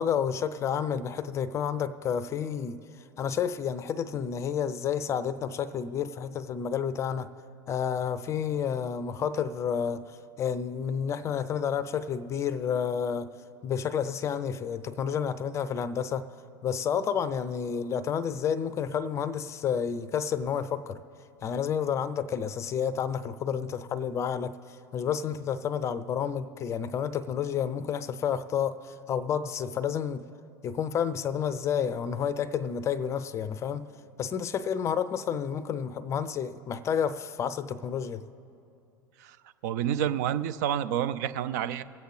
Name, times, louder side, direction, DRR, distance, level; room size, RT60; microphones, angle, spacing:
voice 1, 0.0-2.8 3.2-7.3 7.7-10.0 10.4-13.3 13.6-16.2 16.6-21.0 21.4-24.5 24.9-30.2 30.6-33.9 34.2-38.2, left 7 dB, 25° left, 0.4 m, -30 dB
voice 2, 39.6-41.8, right 10 dB, 55° right, 0.4 m, -29 dB
22.5 x 8.0 x 3.2 m
figure-of-eight pair, 80°, 11 cm